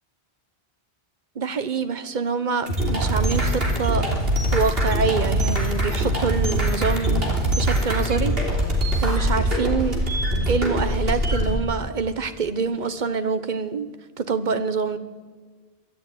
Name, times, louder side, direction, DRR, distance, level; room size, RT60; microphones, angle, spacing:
voice 1, 1.3-4.1 4.5-7.3 7.6-8.4 9.0-10.0 10.5-13.9 14.2-15.0, right 5 dB, 50° right, 1.2 m, -25 dB
sound 1, 2.7-11.5, right 1 dB, 70° right, 3.6 m, -23 dB
24.0 x 12.5 x 9.2 m
omnidirectional pair, 1.0 m